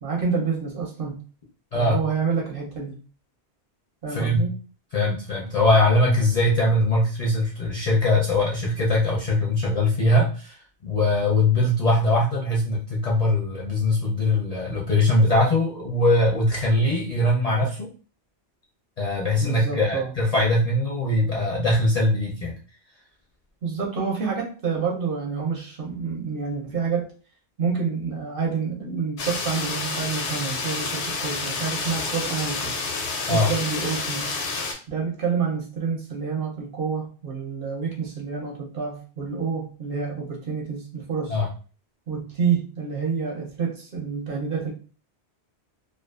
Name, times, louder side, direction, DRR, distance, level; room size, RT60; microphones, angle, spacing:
voice 1, 0.0-1.2 1.7-3.0 4.0-4.6 19.4-20.1 23.6-27.1 27.6-32.8 33.3-34.3 34.9-41.4 42.1-44.7, right 5 dB, 60° right, -1 dB, 0.8 m, -28 dB
voice 2, 4.1-4.4 4.9-10.6 10.8-17.9 19.0-22.5 33.3-33.5 41.3-41.5, left 1 dB, 50° left, -4 dB, 0.5 m, -21 dB
sound 1, 29.2-34.7, left 4 dB, 85° left, 0.9 m, -29 dB
2.3 x 2.3 x 2.3 m, 0.39 s
omnidirectional pair, 1.1 m